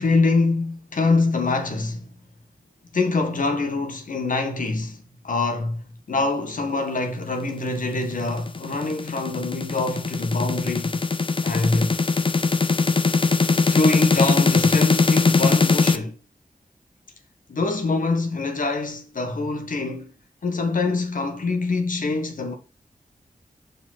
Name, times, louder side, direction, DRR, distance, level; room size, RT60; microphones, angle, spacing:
voice 1, 0.0-2.0 2.9-5.8 6.1-11.0 11.4-11.9 13.5-16.1 17.5-20.1 20.4-22.5, left 3 dB, 70° left, 1.6 m, -24 dB
sound 1, 7.9-16.0, left 4 dB, 40° left, 0.7 m, -21 dB
5.4 x 4.9 x 5.9 m
wide cardioid pair, 95°, 14 cm